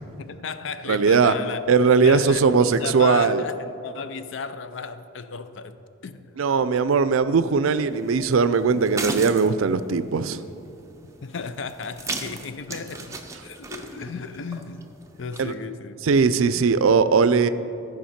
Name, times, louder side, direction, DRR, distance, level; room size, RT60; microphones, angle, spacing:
voice 1, 0.2-1.6 2.0-3.6 3.8-5.8 6.0-6.3 11.2-16.0, left 5 dB, 70° left, 11 dB, 0.5 m, -34 dB
voice 2, 0.9-1.3 1.7-3.4 6.4-10.4 15.4-15.5 16.0-17.5, right 5 dB, 90° right, 14 dB, 0.4 m, -19 dB
sound 1, 7.9-15.6, right 3 dB, 15° right, 0.6 m, -37 dB
14.5 x 4.9 x 5.8 m, 2.8 s
head